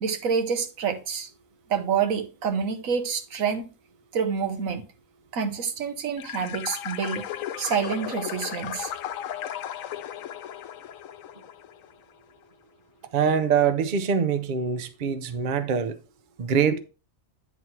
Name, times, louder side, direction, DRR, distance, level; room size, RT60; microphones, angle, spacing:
voice 1, 0.0-1.3 1.7-3.7 4.1-4.8 5.3-7.3 7.6-8.9, right 6 dB, 90° right, 1.4 m, -27 dB
sound 1, 6.2-11.9, left 10 dB, 85° left, 1.0 m, -35 dB
voice 2, 13.1-16.0 16.4-16.8, right 7 dB, 45° right, 0.8 m, -24 dB
9.6 x 4.0 x 4.4 m
omnidirectional pair, 1.4 m